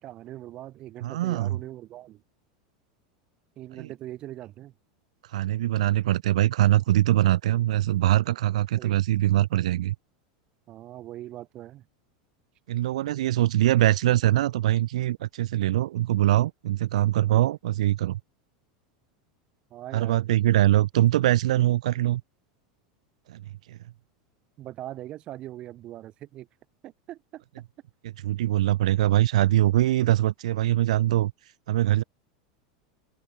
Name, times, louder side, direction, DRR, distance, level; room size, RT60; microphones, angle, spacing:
voice 1, 0.0-2.2 3.6-4.7 8.8-9.0 10.7-11.9 19.7-20.2 24.6-26.5 26.8-27.4, right 14 dB, 30° right, 4.8 m, -41 dB
voice 2, 1.0-1.5 3.8-3.9 5.3-10.0 12.7-18.2 19.9-22.2 23.3-23.4 23.7-23.8 28.2-31.3 31.7-32.0, right 14 dB, 85° right, 1.9 m, -23 dB
supercardioid pair, 170°, 3 cm